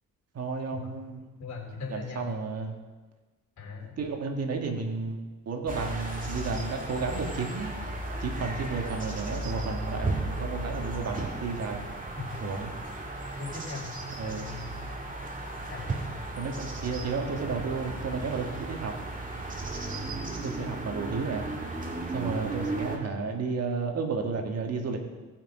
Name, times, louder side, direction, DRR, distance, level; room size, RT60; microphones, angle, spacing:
voice 1, 0.3-1.2 1.9-2.8 4.0-7.7 8.2-11.8 12.4-12.7 14.2-14.5 16.4-18.9 20.4-21.4 22.1-25.0, right 4 dB, 55° right, 3 dB, 1.9 m, -32 dB
voice 2, 1.4-2.3 3.6-4.0 12.2-12.4 13.4-14.0 14.2-14.7 15.7-16.0, left 4 dB, 65° left, 1 dB, 3.2 m, -39 dB
sound 1, 5.7-23.0, right 2 dB, 25° right, 2.2 m, -35 dB
18.5 x 6.1 x 5.0 m, 1.3 s
cardioid pair, 90°, 30 cm